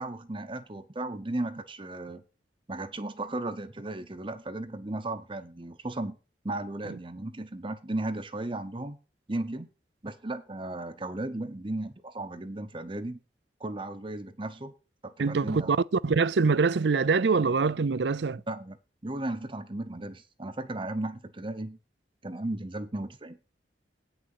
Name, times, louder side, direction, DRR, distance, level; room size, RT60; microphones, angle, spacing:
voice 1, 0.0-2.2 2.7-6.2 6.4-9.0 9.3-9.7 10.0-13.2 13.6-14.7 15.0-15.8 18.5-18.8 19.0-21.8 22.2-23.4, right 2 dB, 30° right, 0.9 m, -35 dB
voice 2, 15.2-15.8 16.0-18.4, right 4 dB, 75° right, 0.5 m, -24 dB
9.0 x 6.6 x 7.2 m
head